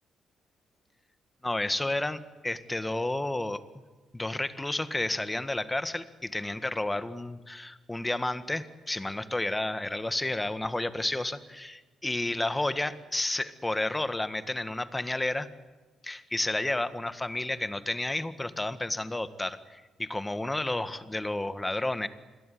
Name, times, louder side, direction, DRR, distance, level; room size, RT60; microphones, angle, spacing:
voice 1, 1.4-3.6 4.1-15.5 16.0-22.1, left 2 dB, 15° left, 12 dB, 1.8 m, -31 dB
27.0 x 21.5 x 9.5 m, 1.3 s
cardioid pair, 90°, 0 cm